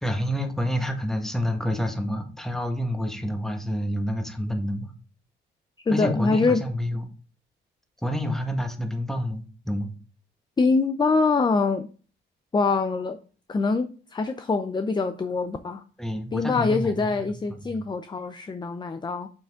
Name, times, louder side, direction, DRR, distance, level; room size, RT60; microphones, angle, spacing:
voice 1, 0.0-4.9 5.9-7.1 8.0-9.9 16.0-17.3 17.7-17.8, equal, ahead, 1.6 m, -28 dB
voice 2, 5.9-6.6 10.6-11.9 12.5-13.2 13.5-15.8 16.3-19.3, left 4 dB, 20° left, 0.6 m, -24 dB
7.1 x 5.8 x 3.6 m
cardioid pair, 90°, 20 cm